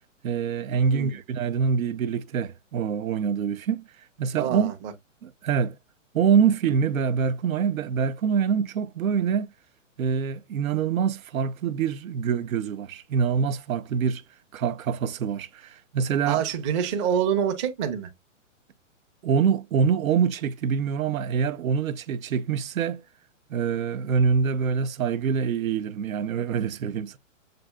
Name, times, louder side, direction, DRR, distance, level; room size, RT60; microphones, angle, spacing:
voice 1, 0.2-3.8 4.2-4.7 5.2-5.8 6.1-9.5 10.0-14.2 14.5-16.4 19.2-23.0 23.5-27.2, right 6 dB, 90° right, 0.7 m, -25 dB
voice 2, 0.8-1.2 4.4-4.9 16.3-18.1, right 8 dB, 25° right, 0.6 m, -26 dB
7.6 x 2.6 x 2.2 m
hypercardioid pair, 150°, 40 cm